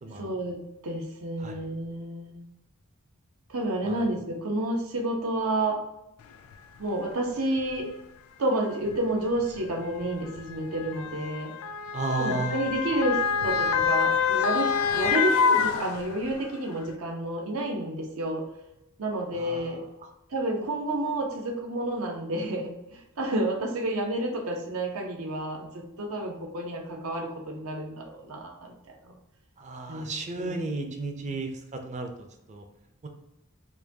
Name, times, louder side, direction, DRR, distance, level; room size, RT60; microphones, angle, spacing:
voice 1, 0.1-2.4 3.5-5.8 6.8-7.9 8.4-11.5 12.2-18.4 19.0-19.8 20.3-29.1 29.9-30.6, right 1 dB, 85° right, 1 dB, 0.8 m, -30 dB
Motor vehicle (road) / Siren, 6.5-6.6 7.6-7.8 8.9-16.5 16.9-17.0, left 6 dB, 75° left, 0.3 m, -27 dB
voice 2, 11.9-12.6 19.4-20.1 29.6-32.1 32.5-32.6 33.0-33.1, right 2 dB, 35° right, 5 dB, 0.5 m, -33 dB
4.6 x 2.3 x 2.7 m, 0.91 s
head